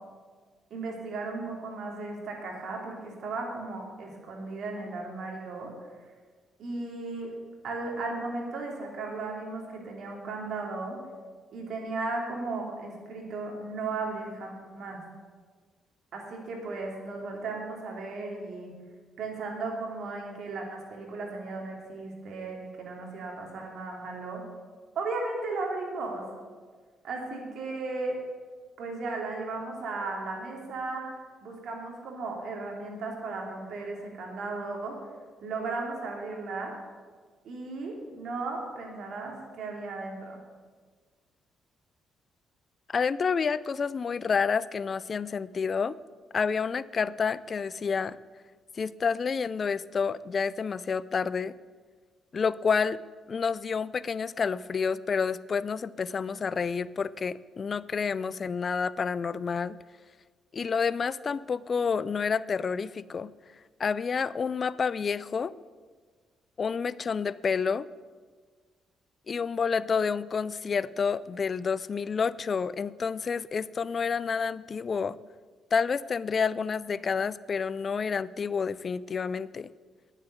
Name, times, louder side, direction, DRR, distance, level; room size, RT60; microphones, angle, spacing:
voice 1, 0.7-5.7 6.6-7.3 7.6-11.0 11.5-15.0 16.1-18.7 19.2-24.4 24.9-26.2 27.0-28.2 28.8-31.0 31.4-35.0 35.4-36.7 37.4-40.4, right 3 dB, 65° right, 0 dB, 3.1 m, -35 dB
voice 2, 42.9-46.0 46.3-48.2 48.8-51.5 52.3-53.0 53.3-59.8 60.5-63.3 63.8-65.5 66.6-67.9 69.3-75.2 75.7-79.7, left 5 dB, 40° left, 19 dB, 0.4 m, -29 dB
9.8 x 7.4 x 9.0 m, 1.5 s
cardioid pair, 90°, 0 cm